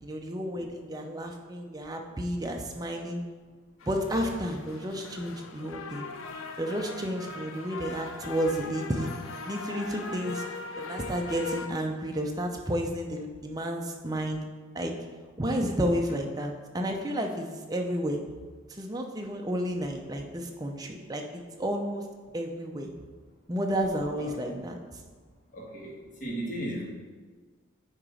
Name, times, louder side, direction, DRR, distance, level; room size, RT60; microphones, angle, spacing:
voice 1, 0.0-3.2 3.8-6.0 6.6-9.1 9.4-10.4 10.7-14.4 14.7-15.0 15.4-18.2 18.7-22.0 22.3-22.9 23.5-25.0, equal, 20° right, 2 dB, 0.5 m, -31 dB
sound 1, 3.8-11.7, left 4 dB, 80° left, 0.5 m, -40 dB
voice 2, 24.2-24.6 25.5-25.9 26.2-26.8, right 1 dB, 40° left, -3 dB, 1.5 m, -35 dB
8.7 x 3.0 x 4.9 m, 1.5 s
head